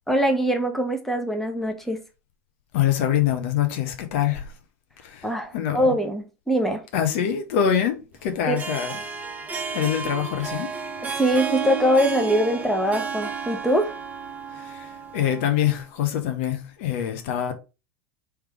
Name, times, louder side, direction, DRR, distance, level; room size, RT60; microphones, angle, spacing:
voice 1, 0.1-2.0 5.2-6.8 8.5-8.6 11.0-13.9, equal, 5° left, 1.1 m, -23 dB
voice 2, 2.7-4.5 5.0-5.9 6.9-9.0 9.7-10.7 14.5-17.5, left 9 dB, 60° left, 0.8 m, -25 dB
Harp, 8.4-15.7, right 5 dB, 20° right, 0.9 m, -32 dB
3.3 x 3.3 x 4.7 m
figure-of-eight pair, 85°, 8 cm